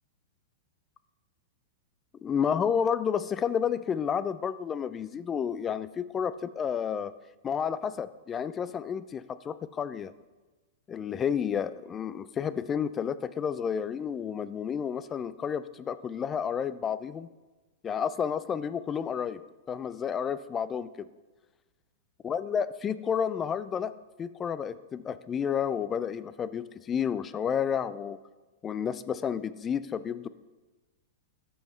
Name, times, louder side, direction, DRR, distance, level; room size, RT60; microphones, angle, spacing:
voice 1, 2.2-7.1 7.4-10.1 10.9-17.3 17.8-19.4 19.7-21.1 22.2-23.9 24.2-28.2 28.6-30.3, left 7 dB, 20° left, 15 dB, 0.3 m, -31 dB
13.0 x 5.5 x 3.1 m, 1.2 s
hypercardioid pair, 130°, 0 cm